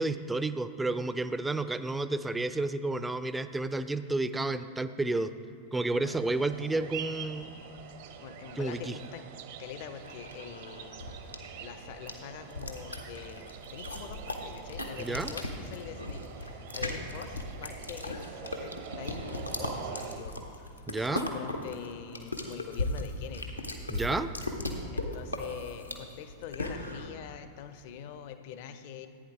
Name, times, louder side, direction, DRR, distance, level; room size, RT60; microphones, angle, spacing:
voice 1, 0.0-5.3 5.7-7.6 8.6-8.9 15.0-15.3 20.9-21.3 23.9-24.3, right 2 dB, 10° right, 12 dB, 0.4 m, -31 dB
sound 1, 6.1-20.2, right 8 dB, 55° right, 0.8 m, -45 dB
voice 2, 8.2-9.3 9.6-11.0 11.6-19.3 19.6-20.9 21.3-23.6 24.9-29.1, left 9 dB, 50° left, 10 dB, 0.6 m, -44 dB
sound 2, 10.0-27.1, left 2 dB, 85° left, 1.1 m, -37 dB
14.5 x 9.2 x 3.5 m, 2.8 s
figure-of-eight pair, 90°, 0 cm